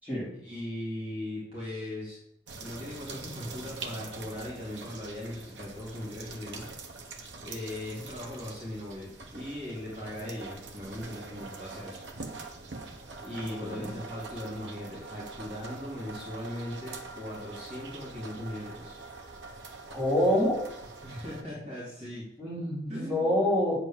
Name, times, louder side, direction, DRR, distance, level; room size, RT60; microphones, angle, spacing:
voice 1, 0.4-2.2 2.6-6.9 7.4-12.0 13.2-19.1 21.0-22.2 22.9-23.3, left 1 dB, 30° right, -8 dB, 3.1 m, -39 dB
sound 1, 2.5-21.4, right 3 dB, 75° right, 1.3 m, -44 dB
voice 2, 13.4-13.9 19.9-20.6 22.4-23.7, left 1 dB, 10° right, -8 dB, 4.3 m, -27 dB
8.7 x 4.9 x 7.6 m, 0.80 s
head